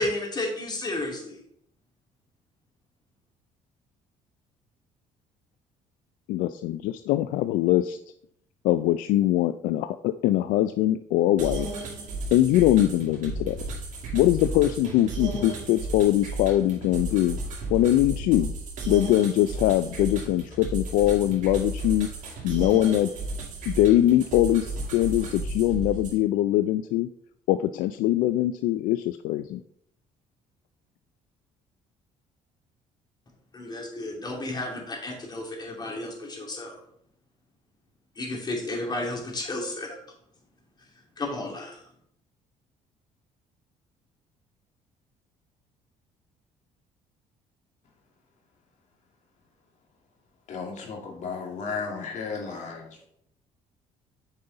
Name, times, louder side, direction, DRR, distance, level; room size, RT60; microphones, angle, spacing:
voice 1, 0.0-1.4 33.5-36.7 38.2-40.0 41.2-41.8, left 2 dB, 30° left, 0 dB, 2.8 m, -32 dB
voice 2, 6.3-8.0 8.6-11.7 12.3-13.6 14.1-17.4 17.7-18.5 18.9-22.1 22.4-23.1 23.7-27.1 27.5-29.6, left 14 dB, 80° left, 11 dB, 0.4 m, -22 dB
sound 1, 11.4-26.2, right 2 dB, 65° right, 2.5 m, -34 dB
voice 3, 50.5-53.0, left 5 dB, 60° left, 1 dB, 2.3 m, -34 dB
8.9 x 5.4 x 4.0 m, 0.70 s
cardioid pair, 90°, 14 cm